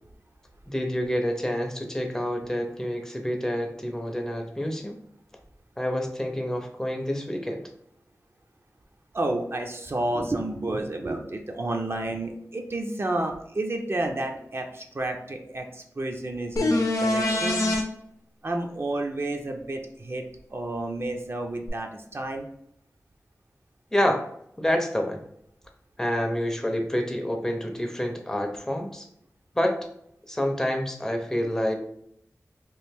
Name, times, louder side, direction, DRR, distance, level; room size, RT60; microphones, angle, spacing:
voice 1, 0.7-5.0 5.8-7.6 23.9-24.2 24.6-25.2 26.0-29.1 29.5-29.7 30.3-31.7, equal, 10° left, 3 dB, 0.5 m, -28 dB
voice 2, 9.1-17.7 18.4-20.2 20.5-22.5, right 2 dB, 45° right, 3 dB, 0.5 m, -30 dB
sound 1, 16.6-17.8 21.7-21.8, left 2 dB, 65° left, 0.6 m, -24 dB
3.0 x 2.5 x 3.4 m, 0.72 s
wide cardioid pair, 80°, 6 cm